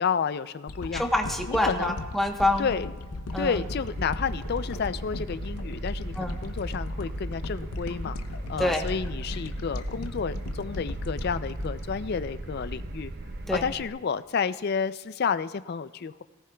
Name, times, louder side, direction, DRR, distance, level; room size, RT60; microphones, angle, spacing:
voice 1, 0.0-1.0 1.5-2.0 2.6-2.9 3.4-8.2 8.5-13.1 13.5-16.2, left 6 dB, 45° left, 13 dB, 0.3 m, -30 dB
sound 1, 0.7-13.0 13.5-13.6, left 2 dB, 90° left, 0.7 m, -38 dB
voice 2, 0.9-2.7 3.3-3.6 6.2-6.4 8.6-8.8 13.5-13.6, left 1 dB, ahead, 2 dB, 0.9 m, -26 dB
sound 2, 3.3-13.9, right 1 dB, 45° right, 0.6 m, -37 dB
18.0 x 17.5 x 2.3 m, 1.4 s
head